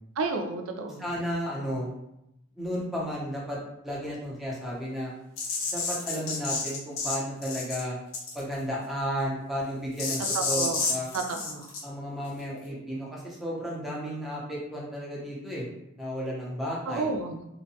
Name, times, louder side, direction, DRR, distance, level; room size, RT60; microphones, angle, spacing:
voice 1, 0.2-1.1 10.3-11.7 12.7-12.8 16.9-17.4, right 3 dB, 80° right, 4 dB, 0.4 m, -32 dB
voice 2, 1.0-1.9 2.6-5.1 5.7-8.0 8.3-11.1 11.8-15.7 16.0-17.1, equal, ahead, -5 dB, 0.6 m, -33 dB
sound 1, 5.4-7.2 7.4-7.8 8.1-8.5 10.0-11.8, left 4 dB, 75° left, 0.8 m, -30 dB
2.6 x 2.1 x 2.7 m, 0.83 s
head